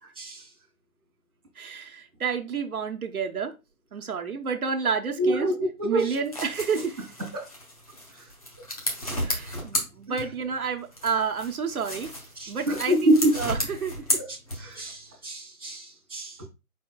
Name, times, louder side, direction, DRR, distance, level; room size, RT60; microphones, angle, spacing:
voice 1, 1.6-3.5 3.9-5.5 5.8-7.0 9.2-12.1 12.5-14.0, right 6 dB, 75° right, 1.0 m, -30 dB
voice 2, 5.2-6.0 7.3-7.4 12.4-13.3 14.2-14.3 14.6-16.5, right 1 dB, 10° right, 0.7 m, -26 dB
sound 1, 6.0-10.6 10.9-14.9, equal, 25° left, 0.8 m, -33 dB
4.5 x 4.2 x 2.2 m
figure-of-eight pair, 160°, 44 cm